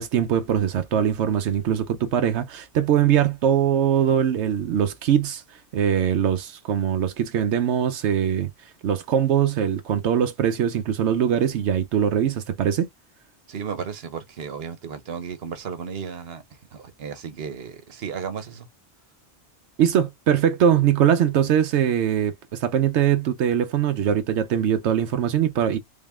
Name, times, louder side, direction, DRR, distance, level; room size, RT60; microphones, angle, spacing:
voice 1, 0.0-12.9 19.8-25.8, right 9 dB, 85° right, 0.9 m, -22 dB
voice 2, 13.5-16.4 16.7-18.7, right 6 dB, 65° right, 1.1 m, -34 dB
3.6 x 3.6 x 2.4 m
omnidirectional pair, 1.2 m